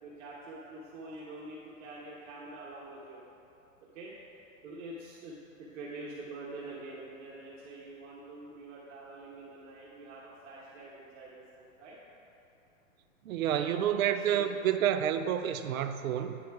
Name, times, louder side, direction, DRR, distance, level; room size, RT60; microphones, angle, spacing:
voice 1, 0.0-3.2 3.9-4.1 4.6-12.0 13.5-14.5, right 2 dB, 60° right, -6 dB, 1.3 m, -46 dB
voice 2, 13.2-16.4, right 10 dB, 80° right, 9 dB, 0.6 m, -29 dB
9.7 x 4.3 x 4.6 m, 2.8 s
hypercardioid pair, 140°, 41 cm